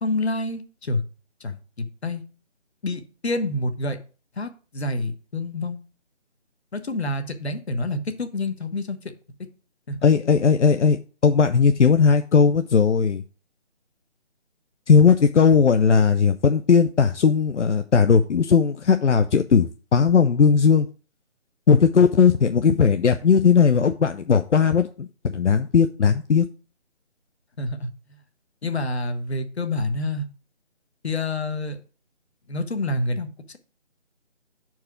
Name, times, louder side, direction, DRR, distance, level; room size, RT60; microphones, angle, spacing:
voice 1, 0.0-1.0 1.4-2.2 2.8-4.0 4.4-5.8 6.7-9.0 9.9-10.1 27.6-27.9 28.6-30.2 31.0-31.8 32.5-33.3, left 2 dB, 65° left, 8 dB, 1.3 m, -27 dB
voice 2, 10.0-11.0 11.2-13.2 14.9-20.9 21.7-26.5, left 6 dB, 85° left, 8 dB, 0.7 m, -18 dB
5.6 x 4.7 x 6.1 m, 0.36 s
figure-of-eight pair, 165°, 35 cm